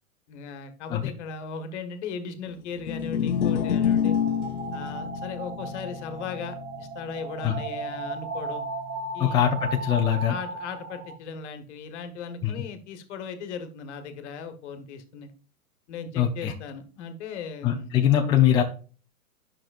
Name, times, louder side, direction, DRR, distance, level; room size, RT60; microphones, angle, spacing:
voice 1, 0.3-4.1 4.7-8.6 9.1-9.4 10.3-15.3 15.9-17.9, left 5 dB, 50° left, 8 dB, 1.4 m, -37 dB
sound 1, 2.8-9.1, left 8 dB, 70° left, 0.9 m, -29 dB
sound 2, 3.4-11.2, right 3 dB, 25° right, 0.9 m, -36 dB
voice 2, 9.2-10.3 12.4-12.6 16.2-16.5 17.6-18.6, left 10 dB, 10° left, 1 dB, 0.5 m, -22 dB
9.8 x 6.1 x 2.4 m, 0.37 s
hypercardioid pair, 120°, 44 cm